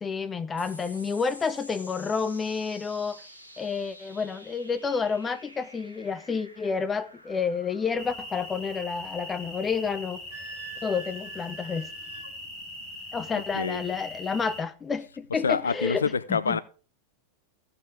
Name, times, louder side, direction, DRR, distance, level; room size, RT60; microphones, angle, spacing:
voice 1, 0.0-3.2 3.6-10.2 10.8-11.9 13.1-16.6, left 5 dB, 15° left, 0.8 m, -30 dB
sound 1, 0.6-15.4, equal, 85° right, 1.7 m, -51 dB
sound 2, 8.0-14.6, left 1 dB, 10° right, 4.8 m, -41 dB
Wind instrument woodwind instrument, 10.3-12.3, right 5 dB, 55° right, 3.9 m, -44 dB
voice 2, 15.4-16.6, left 5 dB, 70° left, 0.5 m, -26 dB
15.0 x 6.9 x 3.6 m
figure-of-eight pair, 90°, 0 cm